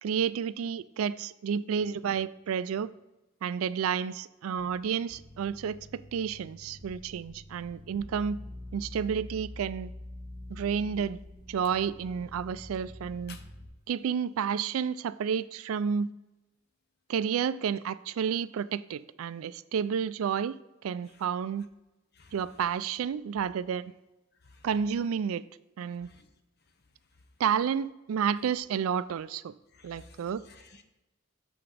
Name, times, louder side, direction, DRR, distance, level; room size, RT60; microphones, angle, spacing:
voice 1, 0.0-2.9 3.4-8.4 8.7-9.9 10.5-11.2 11.5-13.4 13.9-16.1 17.1-20.6 20.8-21.7 22.3-23.9 24.6-25.4 25.8-26.1 27.4-29.5 29.8-30.4, right 7 dB, 90° right, 17 dB, 0.3 m, -30 dB
sound 1, 5.1-13.7, left 1 dB, 5° right, 1.8 m, -46 dB
voice 2, 26.0-26.3 29.7-30.8, left 4 dB, 50° left, 7 dB, 0.8 m, -53 dB
6.9 x 5.9 x 4.9 m, 1.0 s
head